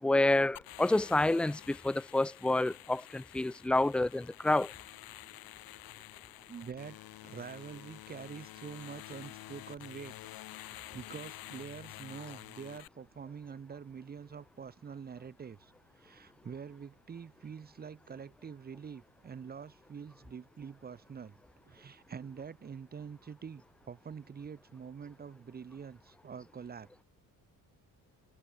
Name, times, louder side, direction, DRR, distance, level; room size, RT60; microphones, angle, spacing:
voice 1, 0.0-4.7, left 2 dB, 5° left, 0.3 m, -28 dB
sound 1, 0.6-12.9, left 16 dB, 80° left, 6.6 m, -49 dB
voice 2, 6.5-10.2 10.5-27.0, right 6 dB, 25° right, 2.2 m, -46 dB
cardioid pair, 175°, 35 cm